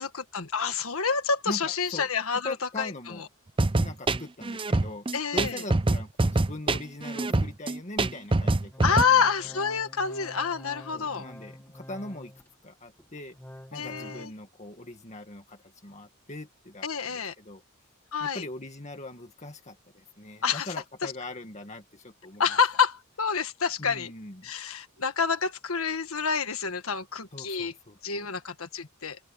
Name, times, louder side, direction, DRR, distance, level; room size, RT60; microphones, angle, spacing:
voice 1, 0.0-2.9 5.1-5.6 8.8-11.2 13.7-14.3 16.8-17.3 18.1-18.4 20.4-20.7 21.0-21.1 22.4-24.1 24.4-27.7 28.0-29.2, left 6 dB, 70° left, 1.6 m, -28 dB
voice 2, 1.5-3.3 3.8-5.1 5.3-9.5 10.9-12.3 12.6-13.4 13.7-17.6 18.2-22.5 23.8-24.5 27.3-28.3, left 2 dB, 30° left, 2.0 m, -41 dB
sound 1, 3.6-9.0, right 2 dB, 25° right, 0.6 m, -25 dB
Organ, 8.7-12.5 13.0-14.3, left 1 dB, 10° left, 1.9 m, -47 dB
open air
head